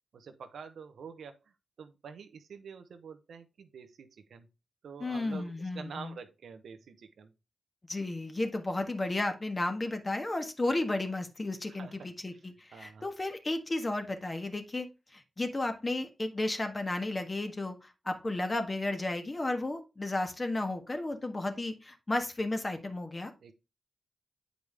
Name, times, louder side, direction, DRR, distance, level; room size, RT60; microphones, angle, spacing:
voice 1, 0.1-1.4 1.8-4.5 4.8-7.3 11.7-12.4 12.7-13.1 23.4-23.5, right 6 dB, 80° right, 0.9 m, -47 dB
voice 2, 5.0-6.1 7.9-23.3, left 2 dB, 30° left, 1.5 m, -33 dB
8.0 x 5.1 x 3.4 m
cardioid pair, 55°, 0 cm